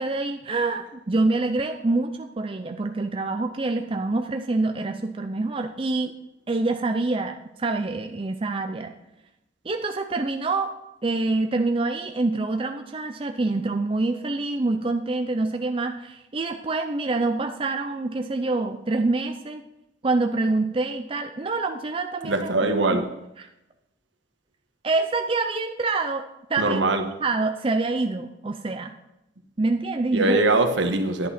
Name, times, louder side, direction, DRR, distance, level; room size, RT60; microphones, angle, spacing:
voice 1, 0.0-6.1 6.5-8.9 9.6-10.7 11.0-19.6 20.0-22.5 22.9-23.0 23.4-23.5 24.8-26.8 27.2-28.9 29.6-30.4, right 3 dB, 30° right, 6 dB, 0.5 m, -26 dB
voice 2, 22.2-23.1 26.6-27.0 30.1-31.3, right 2 dB, 75° right, 6 dB, 1.3 m, -22 dB
11.0 x 8.4 x 4.3 m, 0.92 s
head